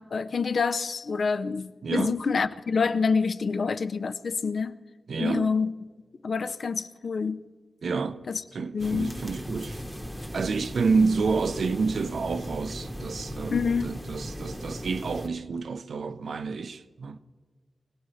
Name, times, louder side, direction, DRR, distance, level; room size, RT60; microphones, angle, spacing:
voice 1, 0.0-4.8 5.2-5.7 6.2-7.5 8.3-8.4 8.7-9.2 13.5-14.0, left 5 dB, 55° left, 0.6 m, -27 dB
voice 2, 1.8-2.1 5.1-5.5 7.8-8.2 8.5-9.8 10.3-17.2, right 4 dB, 65° right, 0.7 m, -29 dB
sound 1, 8.8-15.3, equal, ahead, 1.1 m, -37 dB
25.0 x 18.0 x 3.2 m
wide cardioid pair, 170°, 0 cm